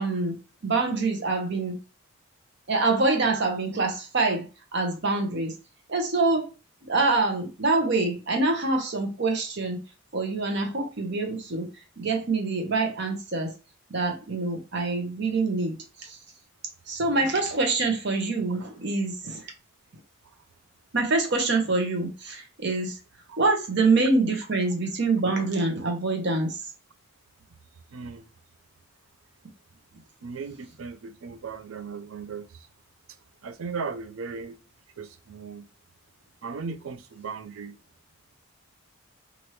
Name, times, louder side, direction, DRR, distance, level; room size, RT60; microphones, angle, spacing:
voice 1, 0.0-1.8 2.7-5.5 5.9-6.5 6.9-9.8 10.1-11.7 12.0-13.5 13.9-16.2 16.9-19.5 20.9-23.0 23.4-26.6, right 3 dB, 50° right, 0.8 m, -25 dB
voice 2, 27.9-28.3 30.2-32.7 33.4-34.6 35.0-35.7 36.4-37.8, right 5 dB, 65° right, 0.4 m, -37 dB
2.9 x 2.5 x 3.1 m
head